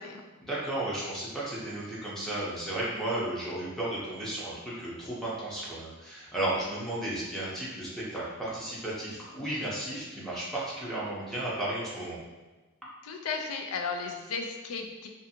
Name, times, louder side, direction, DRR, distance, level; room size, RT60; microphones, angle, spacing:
voice 1, 0.4-12.2, right 1 dB, ahead, -8 dB, 0.6 m, -34 dB
voice 2, 13.0-15.1, left 5 dB, 80° left, 3 dB, 0.4 m, -35 dB
2.6 x 2.5 x 2.6 m, 1.2 s
head